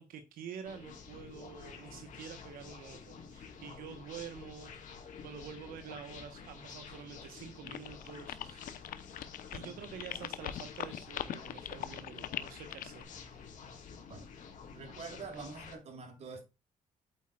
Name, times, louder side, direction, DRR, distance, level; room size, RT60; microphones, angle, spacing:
voice 1, 0.0-4.8 5.2-8.7 9.5-13.1, right 7 dB, 85° right, 1.1 m, -48 dB
sound 1, 0.6-15.7, left 6 dB, 60° left, 2.9 m, -50 dB
sound 2, 7.7-13.0, left 12 dB, 75° left, 0.8 m, -40 dB
voice 2, 14.7-16.4, right 4 dB, 50° right, 3.1 m, -45 dB
8.7 x 8.1 x 2.3 m
cardioid pair, 135°, 14 cm